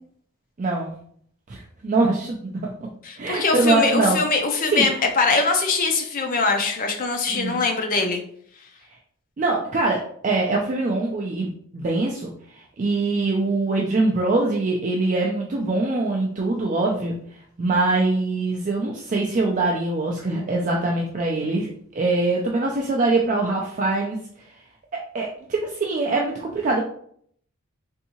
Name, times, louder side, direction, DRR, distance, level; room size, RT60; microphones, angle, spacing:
voice 1, 0.6-0.9 1.5-2.7 3.2-4.2 4.7-5.0 7.3-7.6 9.4-17.2 17.6-24.2 24.9-26.8, right 2 dB, 35° right, 0 dB, 0.3 m, -23 dB
voice 2, 3.0-8.2, left 3 dB, 40° left, 3 dB, 0.5 m, -22 dB
3.5 x 2.7 x 2.8 m, 0.63 s
head